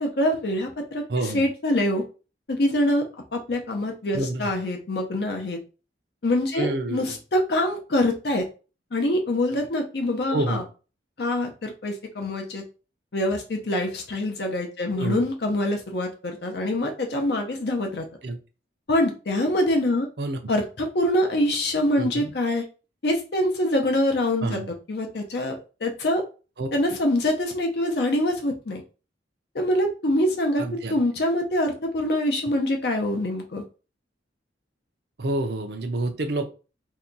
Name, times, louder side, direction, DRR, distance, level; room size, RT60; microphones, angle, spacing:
voice 1, 0.0-1.0 1.3-2.0 2.5-3.0 3.3-5.6 6.2-8.5 8.9-10.6 11.2-12.6 13.1-18.1 18.9-20.1 20.5-22.6 23.0-24.6 24.9-26.2 26.7-28.8 29.5-30.6 30.9-33.6, left 1 dB, 60° left, 3 dB, 0.6 m, -25 dB
voice 2, 1.1-1.4 4.1-4.5 6.5-7.2 10.3-10.6 14.9-15.2 18.2-18.4 20.2-20.4 22.0-22.3 24.4-24.7 26.6-26.7 30.6-31.0 35.2-36.5, right 2 dB, 60° right, 6 dB, 0.6 m, -28 dB
2.8 x 2.2 x 3.8 m, 0.33 s
head